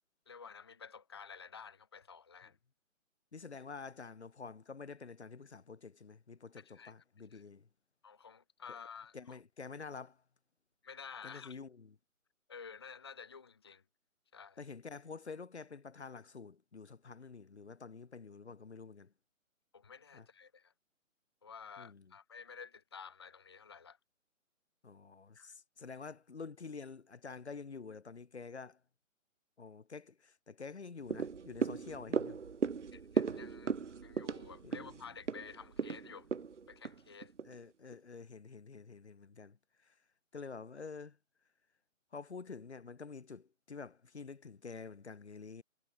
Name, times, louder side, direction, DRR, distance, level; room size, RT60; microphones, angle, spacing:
voice 1, 0.3-2.6 6.6-6.9 7.3-7.4 8.0-9.4 10.8-11.6 12.5-13.8 14.3-14.6 19.7-20.7 21.4-24.0 25.3-25.5 32.9-33.8 34.0-36.3 36.7-37.3, left 6 dB, 20° left, 1.5 m, -51 dB
voice 2, 3.3-7.7 8.7-8.8 9.1-10.2 11.2-11.9 14.6-19.1 20.1-20.3 21.8-22.1 24.8-28.8 29.6-32.4 34.6-34.9 37.4-39.6 39.8-39.9 40.3-41.2 42.1-45.6, left 4 dB, 55° left, 2.7 m, -48 dB
sound 1, 31.1-37.5 37.9-38.0, right 5 dB, 60° right, 1.5 m, -37 dB
hypercardioid pair, 180°, 40 cm